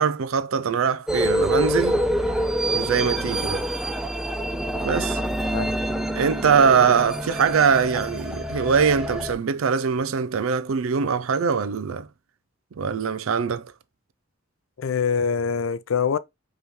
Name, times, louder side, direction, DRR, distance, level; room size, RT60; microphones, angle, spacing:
voice 1, 0.0-2.0 2.7-3.6 4.8-5.2 6.1-12.1 12.8-13.7, right 6 dB, 90° right, 0.5 m, -22 dB
sound 1, 1.1-9.3, right 1 dB, ahead, 0.4 m, -26 dB
voice 2, 14.8-16.2, left 6 dB, 75° left, 0.4 m, -24 dB
5.3 x 3.0 x 3.1 m
head